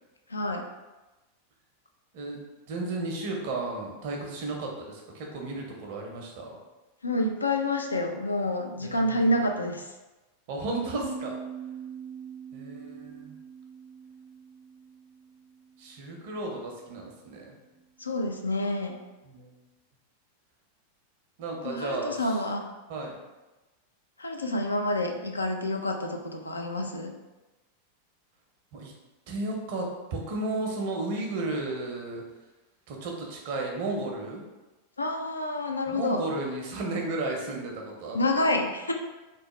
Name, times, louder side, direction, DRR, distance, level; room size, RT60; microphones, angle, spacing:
voice 1, 0.3-0.6 7.0-9.9 18.0-19.0 21.6-22.6 24.2-27.1 35.0-36.2 38.1-38.9, left 1 dB, 80° left, 2 dB, 0.3 m, -28 dB
voice 2, 2.7-6.6 8.8-9.3 10.5-11.3 12.5-13.3 15.8-17.5 19.2-19.5 21.4-22.4 22.9-23.2 28.7-28.9 29.3-29.9 30.1-32.2 32.9-34.4 35.9-38.5, right 2 dB, 50° right, 0 dB, 0.6 m, -34 dB
sound 1, 11.0-16.2, right 6 dB, 40° left, 0.8 m, -43 dB
2.9 x 2.1 x 3.0 m, 1.1 s
figure-of-eight pair, 90°, 0 cm